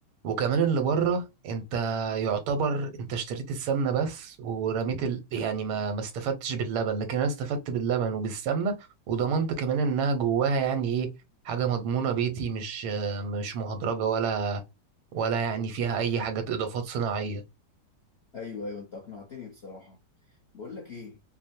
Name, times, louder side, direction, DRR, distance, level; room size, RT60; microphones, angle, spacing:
voice 1, 0.2-8.8 9.1-11.2 11.5-14.6 15.1-17.4, right 6 dB, 90° right, 1.8 m, -28 dB
voice 2, 18.3-20.0 20.3-21.2, left 4 dB, 55° left, 0.7 m, -41 dB
5.3 x 2.1 x 2.7 m
omnidirectional pair, 2.3 m